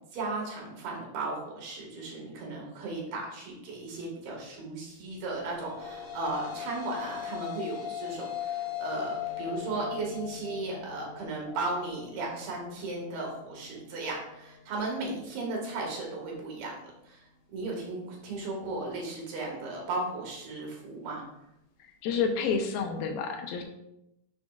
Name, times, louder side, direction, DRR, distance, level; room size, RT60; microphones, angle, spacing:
voice 1, 0.1-17.3 17.5-21.2, right 2 dB, 80° right, -1 dB, 3.9 m, -36 dB
sound 1, 5.4-14.0, left 10 dB, 60° left, 1.4 m, -39 dB
voice 2, 22.0-23.6, left 5 dB, 80° left, 3 dB, 2.8 m, -29 dB
11.0 x 6.5 x 2.5 m, 0.84 s
omnidirectional pair, 4.4 m